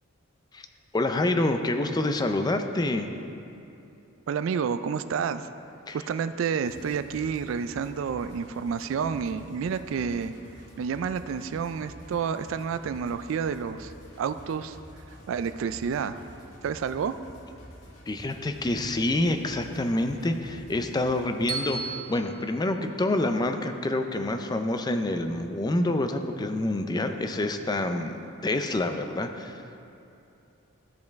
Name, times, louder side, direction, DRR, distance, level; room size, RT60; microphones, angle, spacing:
voice 1, 0.9-3.1 5.9-6.0 18.1-29.6, left 2 dB, 20° left, 6 dB, 0.4 m, -27 dB
voice 2, 4.3-5.5 5.9-10.3 10.8-13.9 14.2-14.8 15.3-16.2 16.6-17.1, right 6 dB, 65° right, 12 dB, 0.3 m, -29 dB
sound 1, 6.6-21.9, equal, 90° left, 1.7 m, -49 dB
Bell, 21.5-23.7, right 5 dB, 25° right, 1.3 m, -37 dB
14.0 x 5.2 x 3.5 m, 2.8 s
head